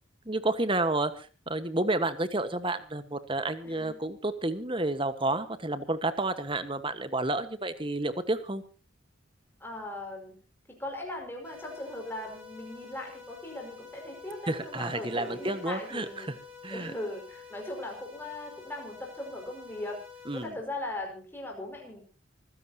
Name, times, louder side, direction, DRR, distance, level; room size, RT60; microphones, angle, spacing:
voice 1, 0.2-8.6 14.5-16.3 16.6-16.9 20.3-20.5, right 2 dB, 25° right, 11 dB, 1.4 m, -30 dB
voice 2, 3.6-4.0 9.6-10.4 10.7-16.3 16.7-20.0 20.3-22.0, left 1 dB, 10° left, 1 dB, 5.3 m, -39 dB
sound 1, 11.4-20.4, left 6 dB, 5° right, 4.9 m, -49 dB
25.0 x 16.0 x 2.9 m, 0.35 s
head